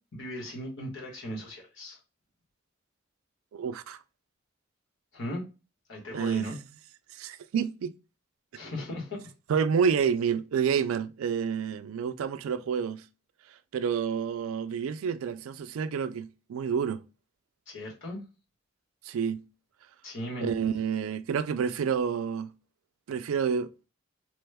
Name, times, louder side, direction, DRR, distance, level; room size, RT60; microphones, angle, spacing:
voice 1, 0.1-2.0 5.1-5.4 5.9-6.5 8.5-9.2 17.7-18.2 20.0-20.5, equal, 70° left, 1.2 m, -37 dB
voice 2, 3.5-4.0 6.1-6.6 7.2-7.9 9.5-13.0 13.7-17.0 19.1-19.4 20.4-22.5 23.1-23.7, right 7 dB, 90° right, 0.3 m, -29 dB
3.0 x 2.2 x 3.3 m
head